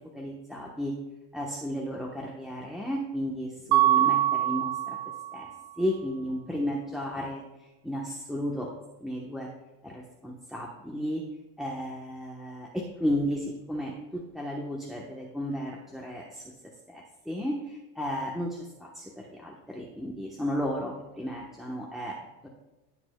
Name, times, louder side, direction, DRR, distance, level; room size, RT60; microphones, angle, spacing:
voice 1, 0.1-0.9 1.3-5.0 5.3-5.5 5.8-8.7 9.0-9.5 9.8-11.2 11.6-16.5 16.9-22.5, equal, ahead, -3 dB, 1.0 m, -34 dB
Mallet percussion, 3.7-5.5, right 13 dB, 55° right, 0.5 m, -24 dB
16.0 x 6.0 x 2.2 m, 1.0 s
supercardioid pair, 115°, 45 cm